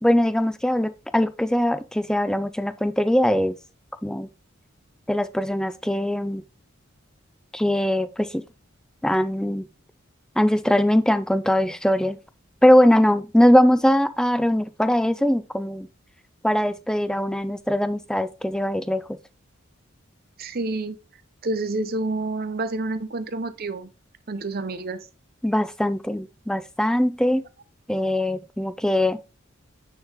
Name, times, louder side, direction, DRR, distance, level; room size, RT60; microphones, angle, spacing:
voice 1, 0.0-3.5 4.0-4.3 5.1-6.4 7.5-8.4 9.0-9.6 10.4-12.2 12.6-15.9 16.4-19.0 25.4-27.4 27.9-29.2, left 1 dB, 5° left, 0.4 m, -21 dB
voice 2, 20.4-21.0 21.4-23.9 24.3-25.1, right 2 dB, 50° right, 0.7 m, -28 dB
9.4 x 3.3 x 3.5 m
head